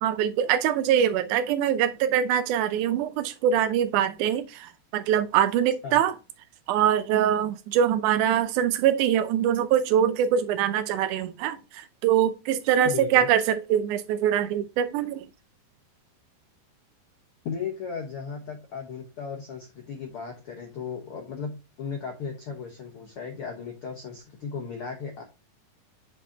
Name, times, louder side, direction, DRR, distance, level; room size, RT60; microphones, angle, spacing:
voice 1, 0.0-6.1 6.7-15.3, right 9 dB, 85° right, 1.7 m, -23 dB
voice 2, 12.8-13.3 17.4-25.2, left 6 dB, 90° left, 1.2 m, -36 dB
7.2 x 5.9 x 2.7 m
omnidirectional pair, 4.3 m